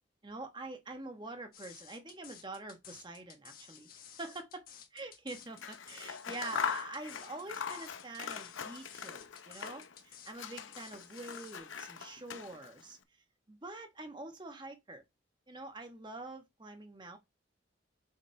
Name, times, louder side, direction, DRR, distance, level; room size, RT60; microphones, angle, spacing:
voice 1, 0.2-3.9 4.2-4.6 4.9-13.0 13.5-15.0 15.5-17.2, right 2 dB, 25° right, 1.1 m, -45 dB
sound 1, 1.5-11.6, left 8 dB, 50° left, 1.3 m, -54 dB
Scissors, 5.5-10.0 10.3-12.8, left 6 dB, 85° left, 0.7 m, -41 dB
6.7 x 5.2 x 3.3 m
head